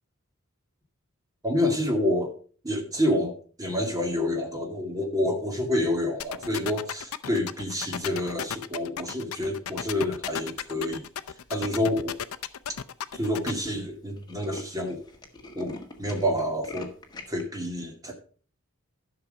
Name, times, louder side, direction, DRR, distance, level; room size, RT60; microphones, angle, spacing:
voice 1, 1.4-2.3 2.6-11.0 11.5-12.2 13.1-15.0 15.5-16.9 17.3-18.1, left 1 dB, 15° right, 2 dB, 2.1 m, -28 dB
sound 1, 6.2-13.5, left 8 dB, 80° left, 0.6 m, -34 dB
Tools, 11.4-11.8 12.4-12.5 12.7-12.8 13.1-13.3 13.6-13.7 13.9-17.4, left 2 dB, 20° left, 1.5 m, -43 dB
11.5 x 6.1 x 5.3 m, 0.41 s
head